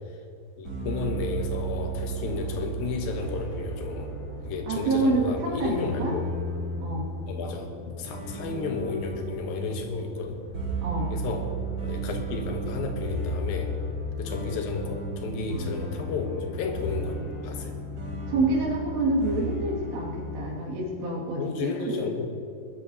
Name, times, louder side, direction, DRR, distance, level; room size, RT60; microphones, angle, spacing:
voice 1, 0.6-4.1 4.4-6.3 7.3-7.7 8.0-10.4 11.1-11.6 11.8-13.8 14.2-17.8 20.5-20.6 21.4-22.3, left 4 dB, 70° left, 4 dB, 2.4 m, -32 dB
sound 1, 0.6-20.4, right 2 dB, 30° right, 4.7 m, -34 dB
Thunder, 1.5-19.2, left 1 dB, 25° left, 4.0 m, -47 dB
voice 2, 4.7-6.1 6.8-7.1 10.8-11.1 18.3-22.1, right 2 dB, 75° right, -2 dB, 4.3 m, -27 dB
21.5 x 13.0 x 2.8 m, 2.3 s
omnidirectional pair, 5.0 m